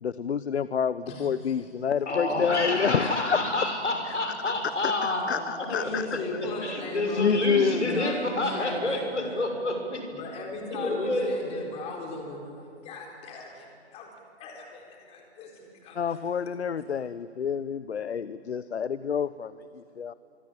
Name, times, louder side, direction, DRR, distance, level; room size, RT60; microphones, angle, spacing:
voice 1, 0.0-3.4 4.4-4.5 4.8-6.2 7.2-8.1 15.9-20.1, left 7 dB, 70° left, 16 dB, 0.9 m, -28 dB
voice 2, 1.1-1.5 5.7-9.5 10.1-16.2, left 2 dB, 20° left, 1 dB, 4.1 m, -38 dB
voice 3, 2.1-10.2 10.7-11.7, left 1 dB, 85° left, 4 dB, 7.1 m, -29 dB
25.0 x 24.5 x 9.1 m, 2.6 s
figure-of-eight pair, 140°, 34 cm